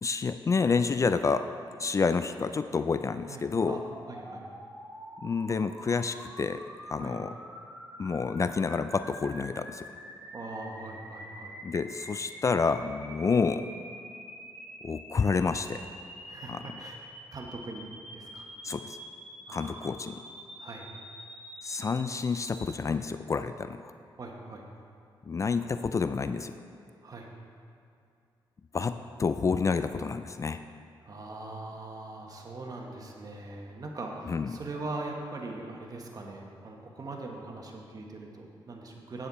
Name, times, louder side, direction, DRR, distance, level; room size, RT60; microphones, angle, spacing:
voice 1, 0.0-1.5 1.8-3.8 5.2-6.6 6.9-7.4 8.0-9.9 11.6-13.7 14.8-15.8 16.5-16.6 18.6-19.0 19.5-20.2 21.6-23.9 25.3-26.5 28.7-30.6 34.3-34.5, left 5 dB, 35° left, 11 dB, 0.4 m, -29 dB
voice 2, 3.3-4.6 7.0-7.2 10.3-11.6 16.3-17.0 17.3-18.5 19.5-20.0 20.6-20.9 24.2-24.8 27.0-27.3 31.0-39.3, right 2 dB, 45° right, 0 dB, 1.5 m, -41 dB
sound 1, 3.6-22.6, equal, 5° right, 2.1 m, -46 dB
8.9 x 8.8 x 4.2 m, 2.5 s
cardioid pair, 75°, 9 cm